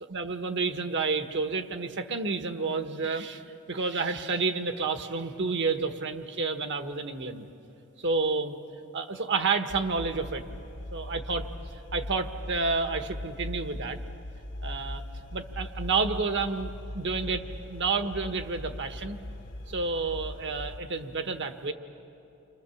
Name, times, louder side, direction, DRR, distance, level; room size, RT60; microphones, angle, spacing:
voice 1, 0.1-3.4 3.7-7.4 8.0-8.6 8.9-10.4 10.9-11.5 11.9-14.0 14.6-15.0 15.3-17.4 17.7-19.2 19.7-21.7, right 4 dB, 55° right, 7 dB, 1.4 m, -30 dB
sound 1, 9.7-20.8, left 1 dB, 65° left, 1.2 m, -40 dB
29.5 x 25.5 x 7.2 m, 2.8 s
head